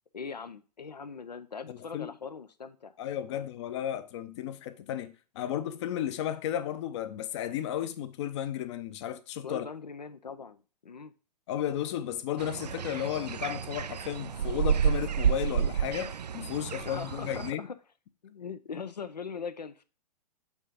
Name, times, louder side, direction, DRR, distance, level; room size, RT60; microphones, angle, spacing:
voice 1, 0.1-2.9 3.3-3.5 9.4-11.1 16.8-17.8 18.2-19.8, left 5 dB, 80° left, 0.7 m, -41 dB
voice 2, 1.7-2.1 3.0-9.6 11.5-17.6, left 10 dB, 45° left, 0.8 m, -34 dB
sound 1, 12.4-17.5, right 8 dB, 75° right, 0.4 m, -30 dB
8.4 x 3.9 x 5.0 m
figure-of-eight pair, 110°, 21 cm